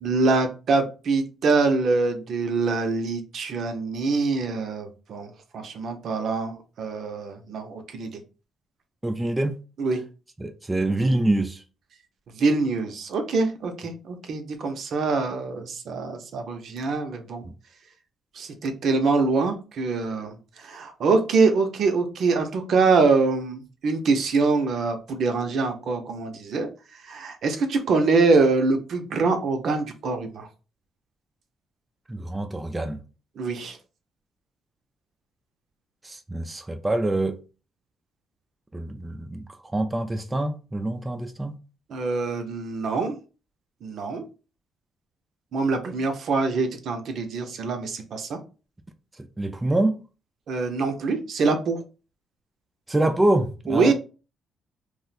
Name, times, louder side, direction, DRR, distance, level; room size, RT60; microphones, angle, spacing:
voice 1, 0.0-8.2 9.8-10.0 12.4-17.4 18.4-26.7 27.0-30.5 33.4-33.8 41.9-43.2 43.8-44.2 45.5-48.4 50.5-51.8 53.7-53.9, right 4 dB, 65° right, 0.6 m, -24 dB
voice 2, 9.0-9.6 10.4-11.6 17.4-17.5 32.1-33.0 36.0-37.4 38.7-41.6 49.4-50.0 52.9-53.9, right 1 dB, 15° right, 0.4 m, -25 dB
2.5 x 2.1 x 3.9 m
cardioid pair, 90°, 0 cm